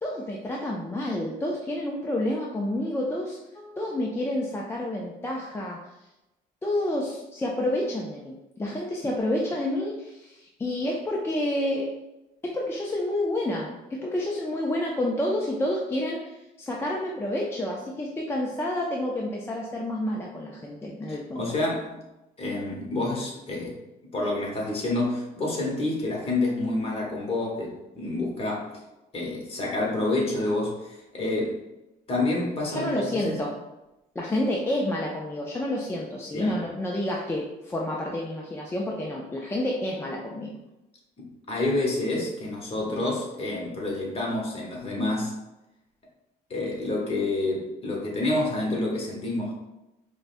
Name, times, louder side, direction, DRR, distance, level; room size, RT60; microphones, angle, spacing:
voice 1, 0.0-3.4 3.8-5.9 6.6-11.9 12.4-21.5 32.7-33.6 34.2-40.5, left 1 dB, 15° left, -2 dB, 0.4 m, -29 dB
voice 2, 21.1-22.0 22.4-23.8 24.1-28.7 29.1-31.6 32.1-33.4 36.3-36.6 41.2-45.3 46.5-49.5, left 2 dB, 35° left, -2 dB, 1.1 m, -28 dB
4.8 x 2.2 x 2.5 m, 0.95 s
cardioid pair, 110°, 17 cm